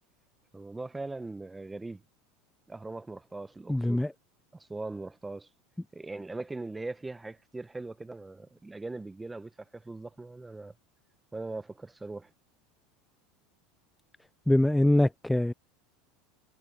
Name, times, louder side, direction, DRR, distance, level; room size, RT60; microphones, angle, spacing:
voice 1, 0.5-2.0 2.7-4.0 4.5-5.5 5.9-10.7 11.3-12.3, right 3 dB, 10° right, 1.2 m, -40 dB
voice 2, 3.7-4.1 14.5-15.5, left 1 dB, 5° left, 0.4 m, -23 dB
hypercardioid pair, 85°, 0 cm